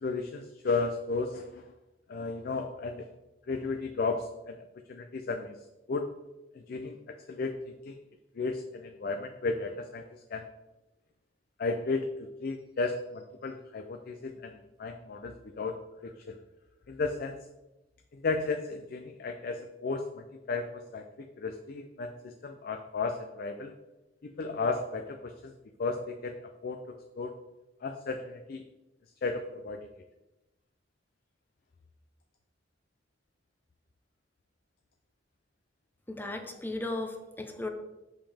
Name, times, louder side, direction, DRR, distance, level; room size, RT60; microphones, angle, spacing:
voice 1, 0.0-1.7 2.1-3.1 3.5-5.6 5.9-6.1 6.5-8.0 8.4-10.5 11.6-16.4 16.9-17.5 18.1-23.7 24.2-25.5 25.8-27.3 27.8-28.6 29.2-29.9, left 3 dB, 55° left, 6 dB, 0.4 m, -34 dB
voice 2, 36.1-37.7, left 2 dB, 10° left, 4 dB, 0.7 m, -36 dB
7.2 x 5.4 x 3.4 m, 1.0 s
head